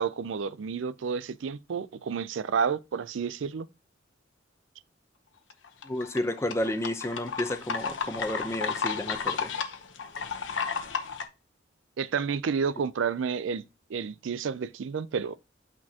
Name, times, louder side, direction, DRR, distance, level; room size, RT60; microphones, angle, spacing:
voice 1, 0.0-3.7 12.0-13.6 13.9-15.4, right 6 dB, 90° right, 0.4 m, -30 dB
sound 1, 5.5-11.2, left 6 dB, 80° left, 0.9 m, -32 dB
voice 2, 5.9-9.5, left 1 dB, 15° left, 0.6 m, -31 dB
8.5 x 4.4 x 2.8 m
head